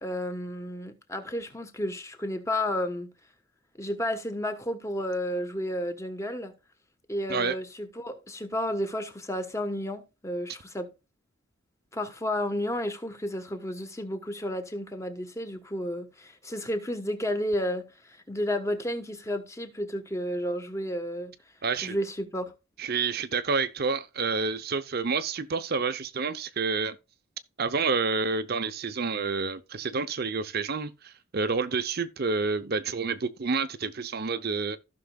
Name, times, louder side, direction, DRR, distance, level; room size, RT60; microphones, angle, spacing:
voice 1, 0.0-3.1 3.8-6.5 7.1-10.9 11.9-21.3 21.8-22.5, left 1 dB, 15° left, 1.1 m, -32 dB
voice 2, 21.6-22.0 22.8-27.0 27.6-34.8, right 4 dB, 45° right, 0.6 m, -29 dB
15.5 x 6.1 x 2.3 m
head